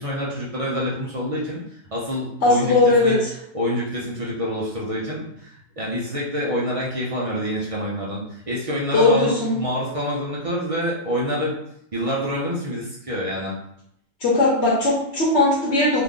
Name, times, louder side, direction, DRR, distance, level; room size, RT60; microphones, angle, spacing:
voice 1, 0.0-1.6 1.9-3.2 3.5-11.5 11.9-13.6, equal, 60° right, -6 dB, 0.3 m, -27 dB
voice 2, 2.4-3.3 8.9-9.5 14.2-16.0, left 2 dB, 55° left, -6 dB, 1.1 m, -18 dB
2.8 x 2.5 x 3.6 m, 0.75 s
omnidirectional pair, 1.5 m